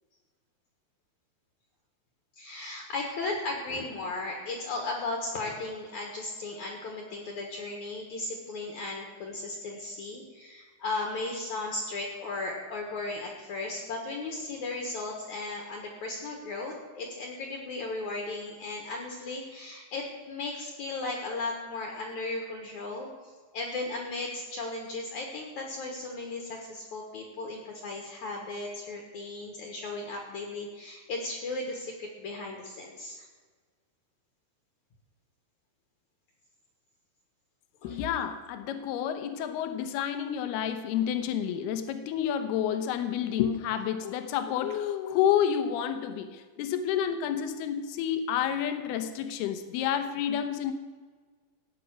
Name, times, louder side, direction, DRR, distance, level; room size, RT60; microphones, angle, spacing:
voice 1, 2.4-33.3 37.8-38.0, left 2 dB, 60° left, 1 dB, 2.5 m, -36 dB
voice 2, 37.8-50.7, left 9 dB, 80° left, 9 dB, 2.9 m, -29 dB
16.0 x 9.4 x 6.2 m, 1.5 s
omnidirectional pair, 4.5 m